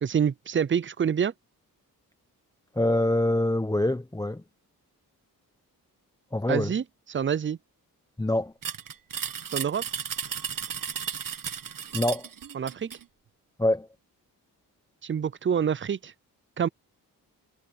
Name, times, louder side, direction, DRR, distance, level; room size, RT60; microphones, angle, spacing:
voice 1, 0.0-1.3 6.5-6.8 7.1-7.6 9.5-9.8 12.5-12.9 15.0-16.1 16.6-16.7, right 7 dB, 30° right, 0.5 m, -26 dB
voice 2, 2.7-4.4 6.3-6.7 8.2-8.5 11.9-12.3 13.6-13.9, left 1 dB, 10° left, 1.1 m, -25 dB
sound 1, 8.6-13.0, right 8 dB, 60° right, 1.5 m, -34 dB
cardioid pair, 65°, 38 cm